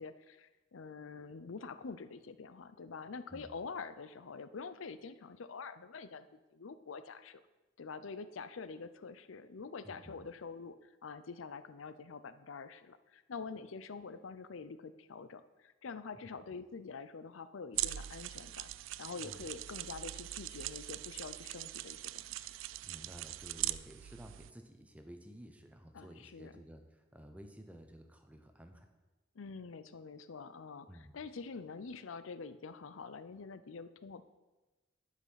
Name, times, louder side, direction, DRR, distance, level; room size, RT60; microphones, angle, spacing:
voice 1, 0.0-7.4 7.8-18.7 19.0-22.5 25.9-26.5 29.4-34.3, left 4 dB, 85° left, 13 dB, 0.6 m, -46 dB
voice 2, 9.8-10.3 19.2-19.5 22.8-28.9 30.9-31.2, equal, 5° right, 5 dB, 0.9 m, -53 dB
sound 1, 17.7-24.5, right 15 dB, 80° right, 0.3 m, -41 dB
11.5 x 6.5 x 5.7 m, 1.2 s
head